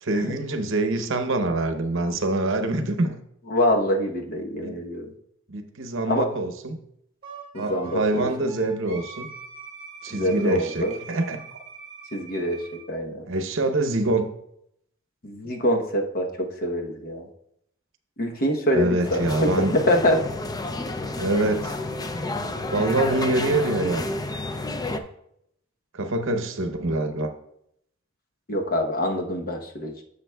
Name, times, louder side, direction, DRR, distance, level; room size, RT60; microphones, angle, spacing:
voice 1, 0.0-3.2 4.6-4.7 5.5-6.8 7.6-9.3 10.0-11.6 13.3-14.3 18.7-19.7 21.2-21.8 22.7-24.0 25.9-27.3, right 2 dB, 65° right, 7 dB, 0.8 m, -25 dB
voice 2, 3.5-5.1 6.1-6.3 7.5-8.5 10.1-10.9 12.1-13.3 15.2-17.3 18.2-20.2 28.5-29.9, equal, 45° left, 2 dB, 1.0 m, -25 dB
Wind instrument woodwind instrument, 7.2-12.9, right 5 dB, 30° right, 2.2 m, -42 dB
sound 1, 19.0-25.0, left 2 dB, 20° left, 0.4 m, -30 dB
10.5 x 7.0 x 2.3 m, 0.74 s
head